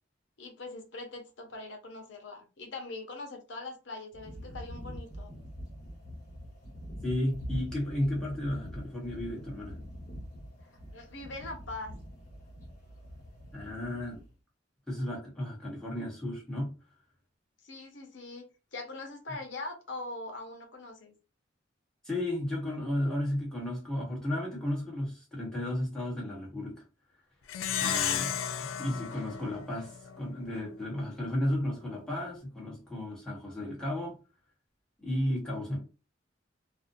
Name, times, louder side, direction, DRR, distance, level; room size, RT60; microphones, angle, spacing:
voice 1, 0.4-5.3 10.6-11.9 17.6-18.4 18.7-21.1 27.7-28.3 29.1-29.2, left 2 dB, 70° left, 0.7 m, -42 dB
sound 1, 4.1-14.3, equal, 40° left, 1.1 m, -44 dB
voice 2, 7.0-9.8 13.5-14.2 14.9-16.7 22.0-26.8 27.8-28.3 28.8-34.2 35.0-35.8, left 1 dB, 5° left, 1.0 m, -33 dB
Plucked string instrument, 27.5-30.3, left 9 dB, 85° left, 0.3 m, -33 dB
2.6 x 2.1 x 2.5 m
head